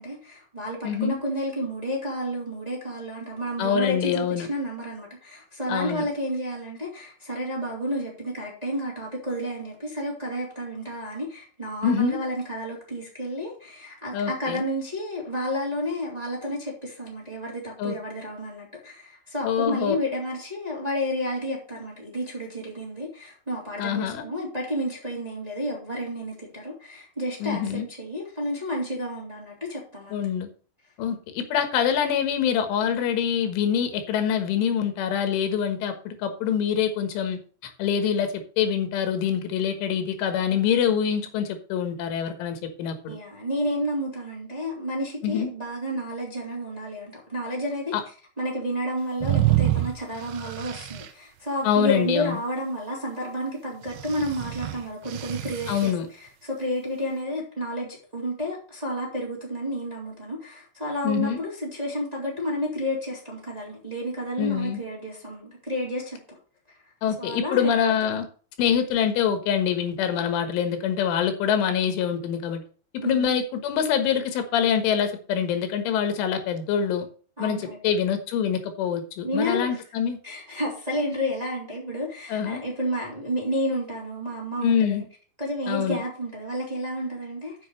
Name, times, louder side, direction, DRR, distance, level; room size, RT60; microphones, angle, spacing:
voice 1, 0.0-30.2 43.1-47.9 48.4-66.2 67.2-68.0 73.0-73.3 77.4-77.8 79.2-79.7 80.2-85.0 85.4-87.5, equal, 10° right, -3 dB, 2.5 m, -31 dB
voice 2, 0.8-1.2 3.6-4.5 5.7-6.1 11.8-12.2 14.1-14.6 17.8-18.0 19.4-20.0 23.8-24.3 27.4-27.9 30.1-30.5 31.0-38.3 38.6-43.2 45.2-45.5 47.9-48.0 51.6-52.4 55.7-56.1 61.0-61.4 64.4-64.8 67.0-68.3 68.6-72.6 72.9-77.1 77.4-80.2 82.3-82.6 84.6-85.0 85.7-86.0, left 8 dB, 85° left, 8 dB, 3.8 m, -25 dB
sound 1, 49.2-51.1 53.9-55.9, right 15 dB, 85° right, 3.4 m, -27 dB
7.8 x 6.8 x 6.4 m, 0.40 s
omnidirectional pair, 5.5 m